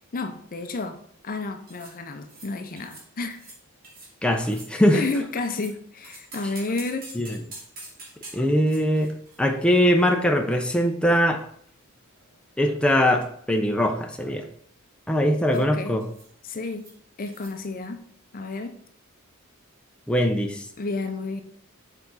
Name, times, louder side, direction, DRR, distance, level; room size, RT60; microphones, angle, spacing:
voice 1, 0.1-1.0 1.2-3.4 4.9-7.1 15.5-16.0 16.4-16.9 17.2-18.0 18.3-18.8 20.8-21.4, left 3 dB, 40° left, 7 dB, 0.6 m, -31 dB
sound 1, 1.7-1.9 2.2-2.5 2.8-3.0 3.3-3.6 3.8-4.1 4.4-5.7 6.0-10.7 11.0-11.1 11.8-12.7 13.0-13.3 13.6-14.0 15.5-15.7 16.0-16.3 16.6-16.9 17.3-17.5, right 2 dB, 45° right, 2.5 m, -46 dB
voice 2, 4.2-5.0 7.2-7.4 8.3-9.1 9.4-11.4 12.6-14.5 15.1-16.0 20.1-20.7, equal, 5° left, 3 dB, 0.6 m, -21 dB
7.0 x 4.9 x 4.0 m, 0.63 s
head